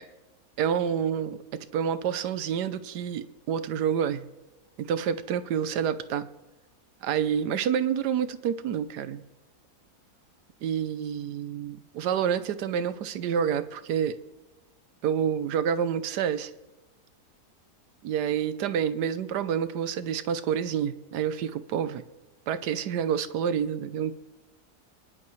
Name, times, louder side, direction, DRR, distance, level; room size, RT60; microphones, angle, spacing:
voice 1, 0.6-4.3 4.8-6.3 7.0-9.2 10.6-14.2 15.0-16.5 18.0-22.0 22.5-24.2, right 8 dB, 85° right, 13 dB, 1.3 m, -28 dB
23.0 x 11.0 x 3.2 m, 1.1 s
omnidirectional pair, 1.7 m